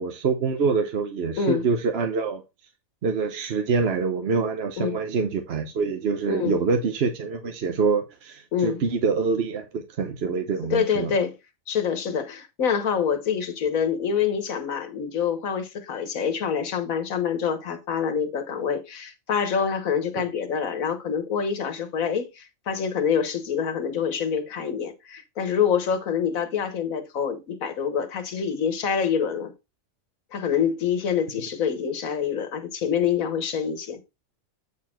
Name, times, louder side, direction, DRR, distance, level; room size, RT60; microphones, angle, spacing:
voice 1, 0.0-2.4 3.0-11.1 20.2-20.3, right 5 dB, 55° right, 1.0 m, -25 dB
voice 2, 6.3-6.6 8.5-8.8 10.7-11.4 11.7-29.5 30.3-34.0, left 7 dB, 80° left, 1.6 m, -26 dB
8.4 x 4.3 x 4.3 m
omnidirectional pair, 1.4 m